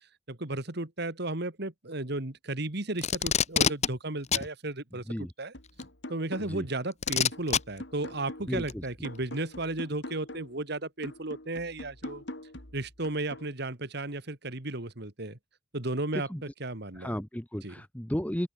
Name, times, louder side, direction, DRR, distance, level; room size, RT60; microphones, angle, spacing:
voice 1, 0.3-5.0 5.4-5.5 6.1-12.2 12.7-15.4 15.7-17.2 17.6-17.8, right 2 dB, 60° right, 2.5 m, -34 dB
Packing tape duct tape, 3.0-3.9 4.3-4.5 5.8-5.9 7.0-7.6 8.7-8.8, left 7 dB, 40° left, 1.1 m, -25 dB
sound 1, 5.5-6.7 7.1-10.6 11.0-13.5, left 1 dB, 70° left, 4.8 m, -44 dB
voice 2, 17.0-18.5, equal, 10° left, 1.3 m, -33 dB
open air
head